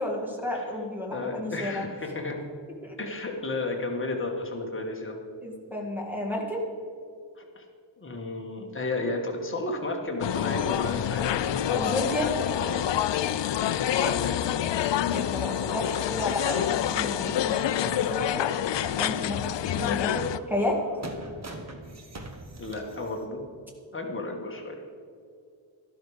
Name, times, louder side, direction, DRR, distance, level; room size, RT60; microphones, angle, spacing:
voice 1, 0.0-1.9 2.8-3.0 5.4-6.6 11.7-12.6 15.1-18.5 19.0-20.8, left 1 dB, 5° right, -1 dB, 2.0 m, -32 dB
voice 2, 1.1-2.4 3.0-5.2 7.3-7.6 8.0-12.3 12.6-12.9 13.6-14.5 19.7-19.9 22.6-23.4 23.9-24.8, left 2 dB, 25° left, 1 dB, 1.7 m, -33 dB
sound 1, 10.2-20.4, left 11 dB, 65° left, 0.5 m, -27 dB
sound 2, 16.2-18.2 18.5-18.6 19.0-19.1 20.3-23.3, right 2 dB, 35° right, 1.2 m, -43 dB
12.5 x 12.0 x 5.0 m, 2.3 s
wide cardioid pair, 170°, 47 cm